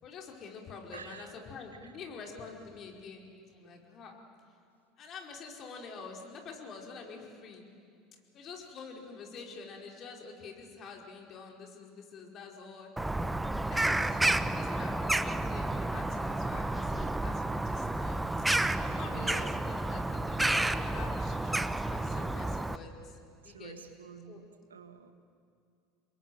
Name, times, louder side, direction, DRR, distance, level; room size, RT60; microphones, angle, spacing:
voice 1, 0.0-4.1 5.0-7.7 8.3-12.9 13.7-14.2 14.5-18.2 18.8-23.2 23.4-23.8 24.3-24.5, left 5 dB, 45° left, 1 dB, 4.9 m, -46 dB
voice 2, 0.9-1.3 1.8-1.9 19.1-19.6 23.4-24.4 24.7-25.1, right 6 dB, 85° right, 9 dB, 1.7 m, -48 dB
Bird vocalization bird call bird song, 13.0-22.8, right 2 dB, 10° right, 1.0 m, -31 dB
28.0 x 22.0 x 9.5 m, 2.3 s
hypercardioid pair, 75°, 0 cm